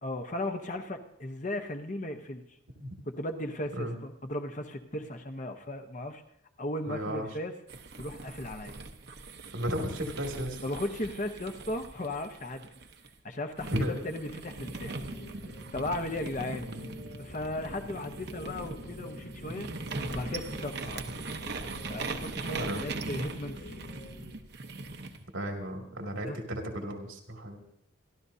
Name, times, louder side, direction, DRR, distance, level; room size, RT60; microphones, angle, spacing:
voice 1, 0.0-2.4 3.1-6.2 6.6-7.5 8.0-8.8 10.6-12.6 13.2-15.0 15.7-16.7 17.2-19.7 20.1-21.0 21.9-23.8 26.2-26.4, left 1 dB, 40° left, 6 dB, 1.0 m, -36 dB
voice 2, 6.9-7.3 9.5-10.6 13.7-13.9 16.6-16.9 22.6-22.8 25.3-27.6, equal, 85° right, 1 dB, 2.6 m, -34 dB
sound 1, 7.7-13.1 13.6-25.2, right 3 dB, 55° right, 1.0 m, -40 dB
sound 2, 14.6-24.3, left 1 dB, 85° left, 6.2 m, -47 dB
27.0 x 12.5 x 2.8 m, 0.78 s
head